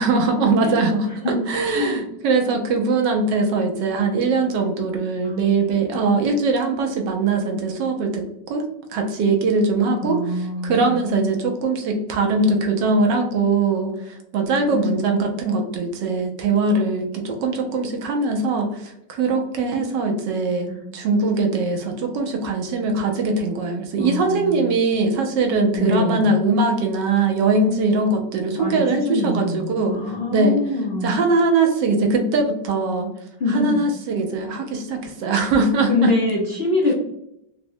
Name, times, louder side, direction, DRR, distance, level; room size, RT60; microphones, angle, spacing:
voice 1, 0.0-8.2 8.5-30.0 30.3-30.6 31.0-33.1 33.5-36.1, right 3 dB, 75° right, 3 dB, 1.2 m, -21 dB
voice 2, 1.7-2.1 5.2-5.6 10.0-10.9 14.4-15.1 20.7-20.8 24.0-24.7 25.7-26.3 28.6-29.6 29.9-31.1 33.4-33.8 35.9-36.9, left 2 dB, 85° left, -4 dB, 0.5 m, -24 dB
4.1 x 2.0 x 2.6 m, 0.79 s
omnidirectional pair, 2.0 m